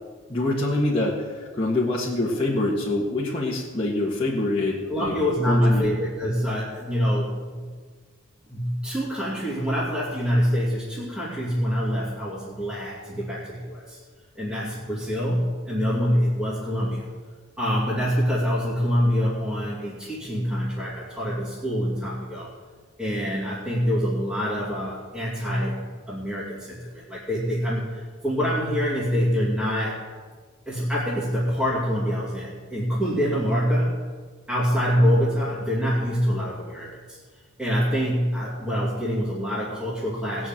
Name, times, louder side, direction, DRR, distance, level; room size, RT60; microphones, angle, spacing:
voice 1, 0.3-5.1 5.4-5.9, left 2 dB, 25° left, -6 dB, 1.6 m, -25 dB
voice 2, 4.9-7.7 8.5-14.0 14.3-17.1 17.6-22.5 23.0-30.1 30.7-34.0 34.5-37.2 37.6-40.5, equal, 5° right, -8 dB, 2.6 m, -25 dB
18.5 x 6.2 x 8.9 m, 1.5 s
head